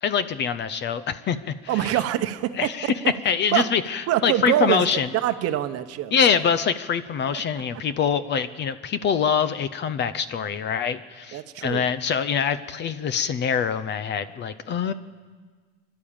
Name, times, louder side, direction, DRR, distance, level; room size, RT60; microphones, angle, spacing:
voice 1, 0.0-1.9 2.6-2.9 3.2-5.1 6.1-14.9, left 7 dB, 30° left, 14 dB, 0.6 m, -24 dB
voice 2, 1.7-2.9 3.5-3.7 4.1-4.8 5.1-6.1 11.3-11.8, right 13 dB, 45° right, 10 dB, 1.0 m, -24 dB
25.5 x 12.0 x 8.8 m, 1.5 s
cardioid pair, 160°, 35 cm